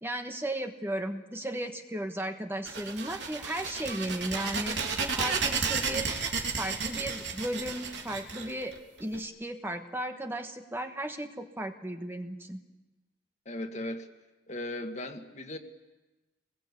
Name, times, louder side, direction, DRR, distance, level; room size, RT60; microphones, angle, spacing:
voice 1, 0.0-4.8 5.2-6.1 6.6-12.6, right 1 dB, 15° right, 5 dB, 1.3 m, -35 dB
sound 1, 2.7-9.2, right 5 dB, 85° right, 3.0 m, -32 dB
voice 2, 13.5-14.1 14.5-15.6, left 1 dB, 40° left, 5 dB, 1.9 m, -37 dB
26.5 x 21.0 x 8.4 m, 1.1 s
head